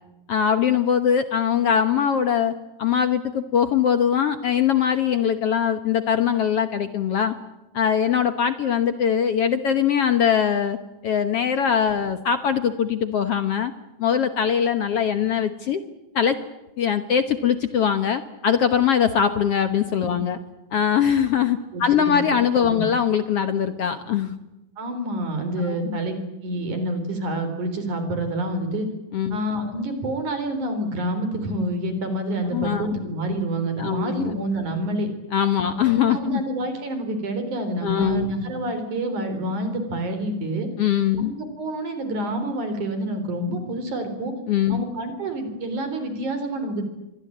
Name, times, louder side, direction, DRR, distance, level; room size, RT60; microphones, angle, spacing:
voice 1, 0.3-2.5 2.8-7.3 7.7-10.8 11.0-13.7 14.0-15.8 16.1-16.4 16.8-20.4 20.7-24.4 25.7-26.0 29.1-29.4 32.5-32.9 33.8-34.3 35.3-36.4 37.8-38.3 40.8-41.3 44.5-44.8, left 8 dB, 60° left, 10 dB, 1.7 m, -22 dB
voice 2, 21.7-22.2 22.6-22.8 24.8-28.9 29.3-35.1 35.6-40.7 41.2-44.3 44.7-46.8, right 1 dB, 60° right, 8 dB, 5.1 m, -28 dB
26.0 x 22.0 x 8.6 m, 1.0 s
omnidirectional pair, 4.0 m